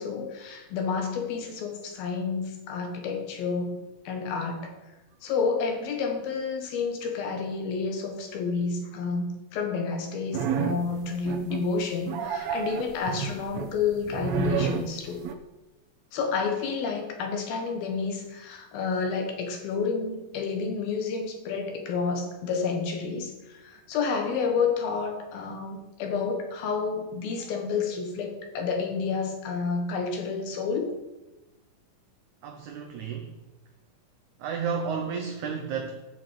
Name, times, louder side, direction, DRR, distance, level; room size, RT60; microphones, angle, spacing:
voice 1, 0.0-3.8 4.0-4.8 5.2-15.2 16.1-30.9, left 5 dB, 85° left, 3 dB, 3.4 m, -30 dB
sound 1, 10.3-10.9 11.3-11.7 12.1-15.3, right 7 dB, 85° right, 1.5 m, -30 dB
voice 2, 32.4-33.4 34.4-36.0, right 6 dB, 70° right, 3 dB, 1.9 m, -32 dB
11.0 x 5.8 x 7.7 m, 1.1 s
omnidirectional pair, 4.1 m